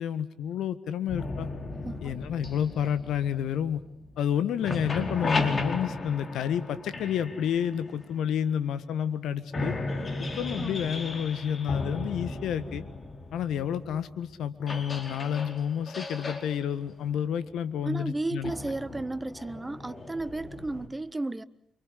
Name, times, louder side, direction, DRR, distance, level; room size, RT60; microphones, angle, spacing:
voice 1, 0.0-1.5 2.0-3.8 4.2-9.8 10.2-12.8 13.3-18.5, left 9 dB, 70° left, 1.6 m, -30 dB
sound 1, 1.1-4.3 4.5-8.5 9.1-9.2 9.5-20.9, left 2 dB, 45° left, 4.7 m, -36 dB
voice 2, 1.8-2.2 10.6-10.8 17.8-21.4, right 2 dB, 20° right, 1.3 m, -33 dB
29.0 x 24.5 x 8.4 m
hypercardioid pair, 40°, 0 cm